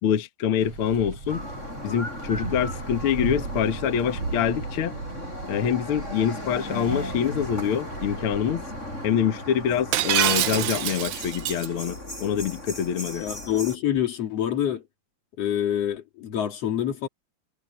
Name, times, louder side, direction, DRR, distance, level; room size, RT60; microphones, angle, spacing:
voice 1, 0.0-1.4 1.8-5.0 5.5-8.6 9.0-13.2, left 8 dB, 75° left, 1.2 m, -25 dB
sound 1, 0.6-9.1, right 4 dB, 40° right, 4.8 m, -36 dB
sound 2, 1.3-13.8, left 1 dB, 15° left, 7.4 m, -37 dB
Shatter, 9.9-11.7, right 12 dB, 85° right, 3.3 m, -25 dB
voice 2, 13.2-14.8 15.4-17.1, left 10 dB, 45° left, 2.7 m, -26 dB
omnidirectional pair, 4.6 m